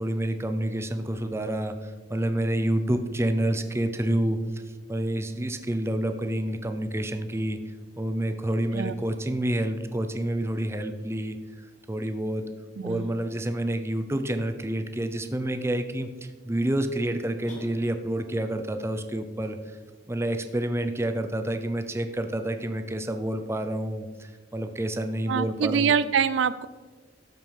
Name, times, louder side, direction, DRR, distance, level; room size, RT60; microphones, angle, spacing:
voice 1, 0.0-4.6 4.9-11.4 11.9-12.5 12.8-19.8 20.1-25.9, right 1 dB, 15° right, 8 dB, 0.6 m, -28 dB
voice 2, 12.8-13.1 25.3-26.7, right 7 dB, 85° right, 15 dB, 0.4 m, -24 dB
sound 1, 17.4-18.4, left 1 dB, 45° left, 1.9 m, -46 dB
13.0 x 5.4 x 4.7 m, 1.3 s
head